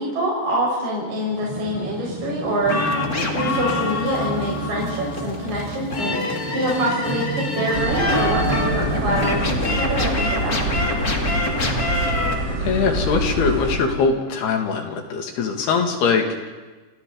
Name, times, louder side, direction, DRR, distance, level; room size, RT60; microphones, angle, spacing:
voice 1, 0.0-2.8 3.3-6.2 6.5-11.0, right 1 dB, 45° right, -4 dB, 6.4 m, -25 dB
sound 1, 1.2-9.6, right 1 dB, 5° right, 3.3 m, -33 dB
sound 2, 2.6-12.3, left 2 dB, 30° left, 2.1 m, -25 dB
sound 3, 7.7-13.8, right 1 dB, 25° right, 3.3 m, -26 dB
voice 2, 12.6-16.5, left 5 dB, 75° left, 3 dB, 4.3 m, -22 dB
29.5 x 29.5 x 4.0 m, 1.3 s
omnidirectional pair, 4.8 m